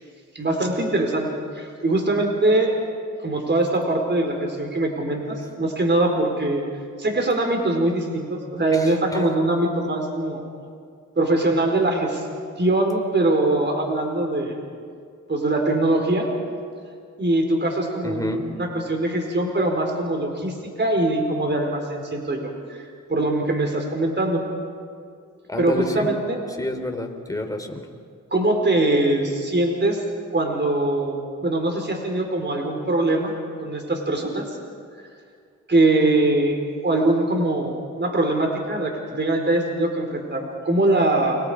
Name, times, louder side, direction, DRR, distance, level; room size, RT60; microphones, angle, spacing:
voice 1, 0.3-2.7 3.2-6.6 7.0-10.4 11.2-12.3 12.6-14.5 15.3-16.3 17.2-22.8 23.1-24.4 25.6-26.4 28.3-30.0 30.3-33.3 33.6-34.6 35.7-36.6 36.8-41.4, right 2 dB, 35° right, 2 dB, 4.6 m, -22 dB
voice 2, 8.7-9.2 18.0-18.4 25.5-26.1 26.6-27.8, left 1 dB, 10° left, 4 dB, 3.9 m, -29 dB
30.0 x 25.0 x 5.2 m, 2.2 s
cardioid pair, 55°, 30 cm